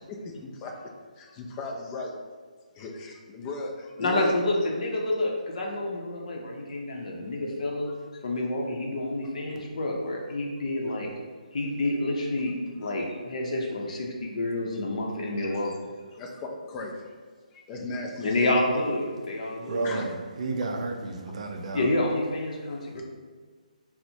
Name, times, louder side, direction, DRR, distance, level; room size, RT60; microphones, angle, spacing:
voice 1, 0.1-2.1 2.8-4.3 12.8-12.9 15.4-15.5 16.2-17.1 17.5-18.6 19.8-20.0 22.9-23.0, left 2 dB, 20° left, 1 dB, 0.3 m, -37 dB
voice 2, 4.0-7.9 8.2-11.1 11.5-15.7 16.0-16.1 18.2-19.8 21.7-23.0, left 1 dB, 60° left, -1 dB, 0.6 m, -28 dB
voice 3, 19.4-21.9 22.5-23.0, right 3 dB, 50° right, 3 dB, 0.4 m, -33 dB
4.1 x 2.1 x 2.7 m, 1.5 s
hypercardioid pair, 155°, 4 cm